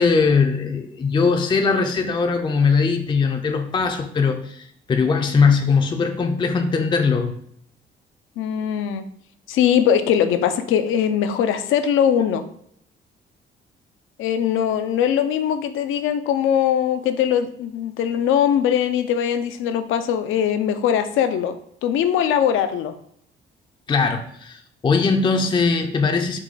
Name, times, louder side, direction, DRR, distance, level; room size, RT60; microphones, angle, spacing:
voice 1, 0.0-7.3 23.9-26.4, left 5 dB, 25° left, 4 dB, 0.4 m, -20 dB
voice 2, 8.4-9.0 9.5-12.4 14.2-22.9, left 9 dB, 85° left, 9 dB, 0.4 m, -21 dB
4.6 x 2.2 x 3.8 m, 0.67 s
cardioid pair, 90°, 20 cm